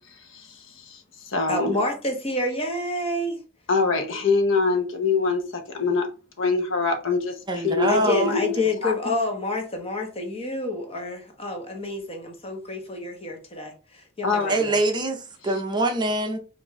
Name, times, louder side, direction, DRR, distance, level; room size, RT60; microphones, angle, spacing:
voice 1, 0.1-1.8 3.7-6.1 6.4-8.9 14.2-14.6, left 4 dB, 65° left, 0.8 m, -25 dB
voice 2, 1.5-3.4 7.9-14.7, left 2 dB, 30° left, 1.1 m, -28 dB
voice 3, 7.5-8.4 14.5-16.4, right 2 dB, 20° right, 0.6 m, -24 dB
5.0 x 2.6 x 3.6 m
head